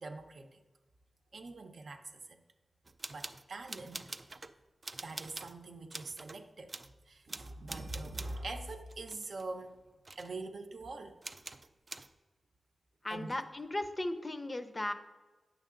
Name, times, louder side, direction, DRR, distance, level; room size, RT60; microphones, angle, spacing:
voice 1, 0.0-0.6 1.3-2.4 3.1-4.0 5.0-6.7 7.1-9.7 10.2-11.2 13.1-13.4, right 2 dB, 65° right, 5 dB, 0.7 m, -43 dB
sound 1, 2.8-4.5 4.8-5.6 5.9-6.4 6.7-6.9 7.3-8.4 8.9-9.8 10.0-10.3 11.2-12.1, right 3 dB, 35° right, 0.3 m, -46 dB
voice 2, 13.0-14.9, left 1 dB, 25° left, 8 dB, 0.5 m, -36 dB
9.2 x 6.5 x 3.7 m, 1.2 s
wide cardioid pair, 125°, 0 cm